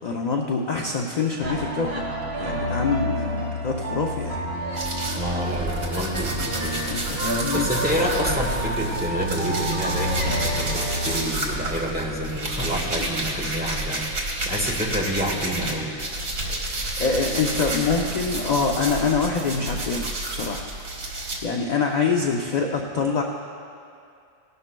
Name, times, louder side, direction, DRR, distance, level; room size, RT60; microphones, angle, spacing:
voice 1, 0.0-2.0 2.3-4.4 6.8-7.7 12.9-13.1 16.6-20.6 21.4-23.2, left 4 dB, 45° left, 1 dB, 0.5 m, -25 dB
sound 1, 1.4-11.2, equal, 50° right, 1.6 m, -29 dB
sound 2, 4.7-15.7 16.0-21.4, right 1 dB, 80° right, 2.1 m, -30 dB
voice 2, 5.1-6.9 7.5-14.1 14.4-16.0, equal, 5° right, -3 dB, 1.4 m, -28 dB
18.5 x 12.0 x 2.2 m, 2.4 s
omnidirectional pair, 1.4 m